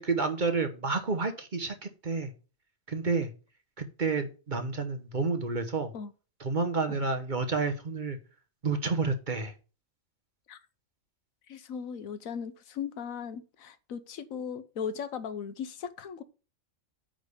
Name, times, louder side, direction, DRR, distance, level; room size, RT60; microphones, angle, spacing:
voice 1, 0.0-2.3 2.9-3.3 3.8-5.9 6.4-8.2 8.6-9.5, right 4 dB, 40° right, 1.0 m, -30 dB
voice 2, 11.5-16.2, left 7 dB, 85° left, 1.3 m, -38 dB
9.0 x 3.5 x 6.5 m
omnidirectional pair, 1.4 m